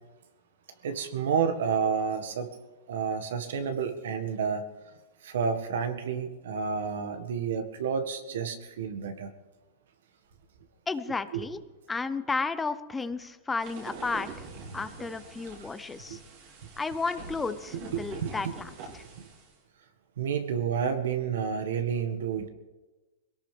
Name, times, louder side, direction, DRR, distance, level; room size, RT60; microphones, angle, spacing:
voice 1, 0.8-2.5 2.9-4.6 5.2-9.3 11.3-11.4 16.1-16.2 17.9-18.3 20.2-22.5, right 6 dB, 75° right, 8 dB, 1.7 m, -30 dB
voice 2, 10.9-11.6 11.9-14.5 14.7-16.2 16.8-19.0, left 4 dB, 10° left, 12 dB, 0.7 m, -33 dB
sound 1, 13.6-19.5, right 4 dB, 50° right, 3.2 m, -44 dB
21.5 x 17.5 x 3.5 m, 1.2 s
hypercardioid pair, 135°, 0 cm